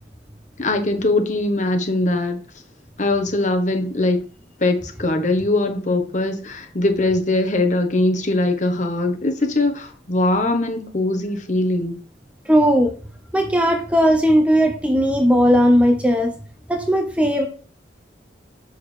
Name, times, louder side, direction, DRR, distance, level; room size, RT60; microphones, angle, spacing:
voice 1, 0.6-2.4 3.0-4.2 4.6-12.0, left 2 dB, 40° left, 1.0 m, -21 dB
voice 2, 12.5-12.9 13.3-16.3 16.7-17.5, equal, 5° right, 0.8 m, -17 dB
7.0 x 6.1 x 3.3 m
head